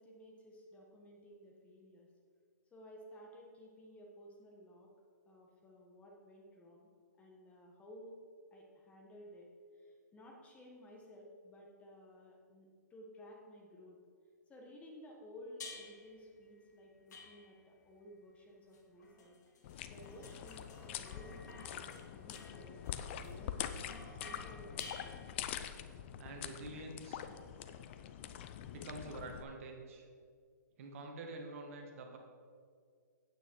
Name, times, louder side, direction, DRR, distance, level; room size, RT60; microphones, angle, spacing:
voice 1, 0.0-2.1 2.7-4.9 5.2-6.9 7.2-8.2 8.5-14.0 14.5-19.4 19.9-23.9 24.2-24.8, equal, 15° left, -1 dB, 1.4 m, -56 dB
sound 1, 15.6-16.1 17.1-17.8 18.7-25.6, left 3 dB, 65° left, 2.2 m, -54 dB
sound 2, 19.6-29.4, left 10 dB, 40° left, 0.6 m, -45 dB
voice 2, 26.2-27.3 28.7-30.1 30.8-32.2, right 2 dB, 45° right, 3 dB, 1.6 m, -47 dB
9.1 x 8.8 x 4.7 m, 2.1 s
hypercardioid pair, 145°, 10 cm